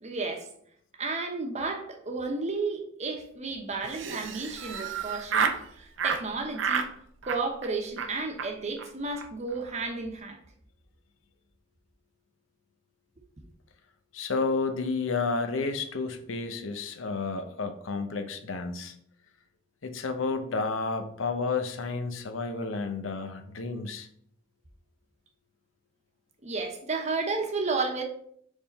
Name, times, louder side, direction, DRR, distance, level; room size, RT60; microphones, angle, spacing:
voice 1, 0.0-0.5 1.0-6.9 7.3-10.4 26.4-28.0, right 3 dB, 35° right, 3 dB, 0.9 m, -32 dB
Laughter, 3.8-5.6 6.0-6.2 6.6-6.9 7.2-7.7 8.0-8.1 8.4-8.5 8.8-8.9 9.1-9.3 9.5-9.9, right 6 dB, 70° right, 0.5 m, -30 dB
voice 2, 14.1-18.9 19.8-24.1, left 4 dB, 80° left, 7 dB, 0.7 m, -31 dB
4.9 x 3.6 x 5.3 m, 0.67 s
head